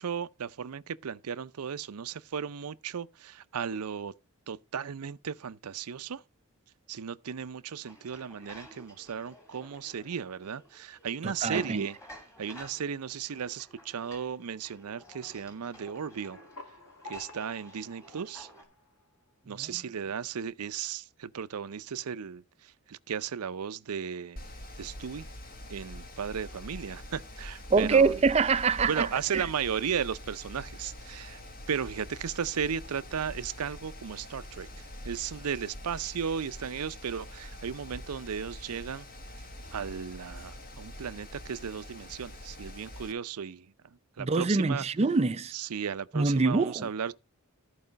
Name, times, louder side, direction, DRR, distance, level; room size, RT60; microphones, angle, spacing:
voice 1, 0.0-4.1 4.5-6.2 6.9-12.0 12.4-16.4 17.1-18.5 19.5-22.4 22.9-24.4 24.8-25.3 25.7-28.1 28.9-31.4 31.7-34.7 35.0-39.1 39.7-43.7 44.2-44.8 45.5-47.1, right 7 dB, 85° right, 0.5 m, -35 dB
sound 1, 7.8-18.6, left 1 dB, 15° left, 2.7 m, -53 dB
voice 2, 11.2-11.9 19.6-19.8 27.7-29.5 44.2-45.5 46.1-46.9, right 4 dB, 30° right, 0.5 m, -25 dB
sound 2, 16.0-19.3, left 1 dB, 85° left, 2.3 m, -49 dB
Mechanical fan, 24.4-43.1, left 1 dB, 40° left, 1.4 m, -45 dB
13.5 x 4.8 x 5.2 m
head